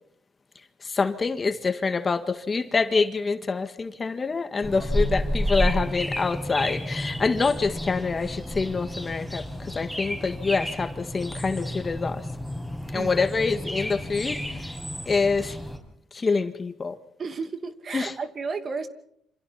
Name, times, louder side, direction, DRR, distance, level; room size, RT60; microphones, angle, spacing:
voice 1, 0.8-12.3 12.9-14.8 15.1-15.6 16.1-17.0 17.9-18.1, left 4 dB, 35° left, 1.9 m, -26 dB
sound 1, 4.6-15.8, equal, ahead, 6.1 m, -31 dB
voice 2, 17.2-18.9, right 4 dB, 45° right, 2.6 m, -32 dB
28.0 x 26.5 x 4.3 m
cardioid pair, 90°, 0 cm